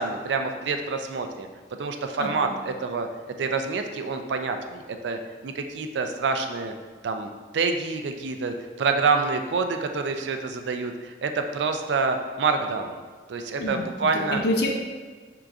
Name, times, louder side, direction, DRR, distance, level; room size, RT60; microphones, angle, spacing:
voice 1, 0.0-1.5 1.8-3.1 3.4-6.7 7.0-13.0 13.3-14.4, right 4 dB, 80° right, 6 dB, 0.4 m, -27 dB
voice 2, 2.2-2.5 13.5-14.7, left 1 dB, 60° left, 2 dB, 0.5 m, -28 dB
4.6 x 3.8 x 2.4 m, 1.4 s
head